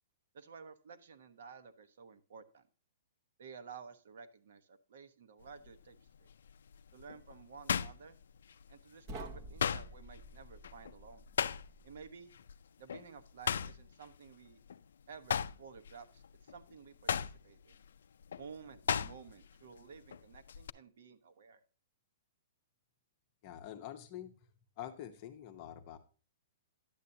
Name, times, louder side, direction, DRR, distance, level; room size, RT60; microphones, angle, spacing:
voice 1, 0.3-2.6 3.4-6.3 6.9-8.2 8.7-11.2 11.8-12.3 12.8-14.6 15.1-17.8 18.4-21.6, right 6 dB, 55° right, 10 dB, 1.1 m, -53 dB
sound 1, 5.4-5.8 6.3-8.8 9.1-12.0 12.3-12.5 12.9-14.8 15.1-19.5 19.8-20.7, left 7 dB, 75° left, 0.4 m, -37 dB
sound 2, 9.1-12.1, right 1 dB, 25° right, 0.9 m, -50 dB
voice 2, 23.4-24.3 24.8-26.0, left 11 dB, 30° left, 5 dB, 0.8 m, -46 dB
10.5 x 8.2 x 2.7 m, 0.37 s
hypercardioid pair, 175°, 0 cm